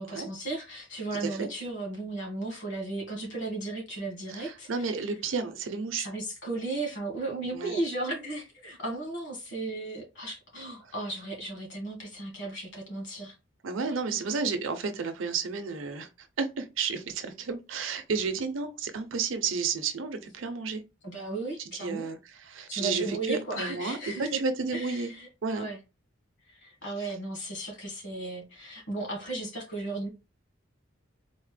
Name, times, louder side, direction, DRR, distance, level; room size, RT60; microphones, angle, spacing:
voice 1, 0.0-4.9 5.9-13.4 13.9-14.2 21.0-22.1 22.7-24.4 24.7-25.3 25.5-25.8 26.5-30.1, right 2 dB, 65° left, 1.5 m, -35 dB
voice 2, 4.3-6.1 7.5-7.8 13.6-20.8 21.8-22.2 22.5-25.1 25.4-25.7, right 5 dB, 80° right, 0.6 m, -32 dB
4.1 x 2.1 x 3.3 m
head